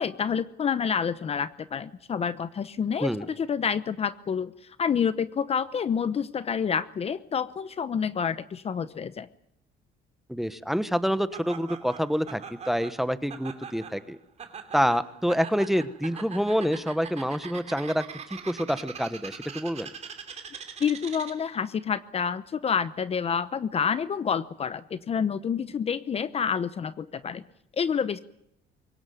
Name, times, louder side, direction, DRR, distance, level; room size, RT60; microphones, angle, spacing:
voice 1, 0.0-4.5 4.8-9.3 20.8-27.4 27.7-28.2, left 7 dB, 35° left, 14 dB, 0.9 m, -28 dB
voice 2, 10.3-12.4 12.7-14.2 14.7-19.9, equal, ahead, 13 dB, 1.2 m, -27 dB
Laughter, 11.3-21.6, right 6 dB, 40° right, 3.0 m, -42 dB
22.5 x 18.0 x 9.4 m, 0.79 s
cardioid pair, 110°, 17 cm